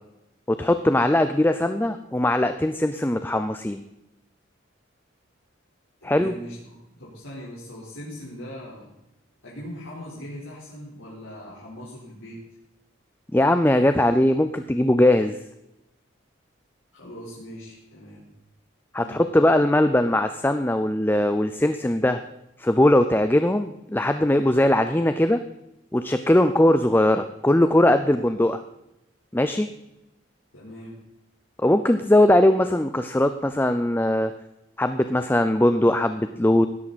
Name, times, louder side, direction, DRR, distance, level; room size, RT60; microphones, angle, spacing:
voice 1, 0.5-3.8 6.0-6.3 13.3-15.4 18.9-22.2 22.6-25.4 25.9-28.6 29.3-29.7 31.6-34.3 34.8-36.7, left 1 dB, 10° left, 9 dB, 0.5 m, -20 dB
voice 2, 6.0-8.9 9.4-12.4 16.9-18.2 19.0-19.3 30.5-31.0, equal, 80° left, -8 dB, 4.1 m, -40 dB
16.5 x 12.5 x 4.2 m, 0.89 s
head